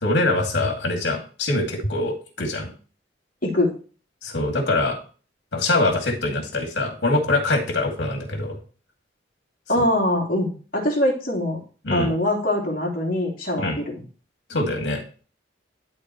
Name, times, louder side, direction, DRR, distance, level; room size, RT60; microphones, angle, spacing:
voice 1, 0.0-2.7 4.2-5.0 5.5-8.6 11.8-12.1 13.6-13.8 14.5-15.0, left 2 dB, 70° left, 2 dB, 2.4 m, -23 dB
voice 2, 3.4-3.7 9.7-11.6 11.9-14.0, left 1 dB, 50° left, -2 dB, 2.8 m, -23 dB
12.0 x 4.3 x 3.1 m, 0.38 s
head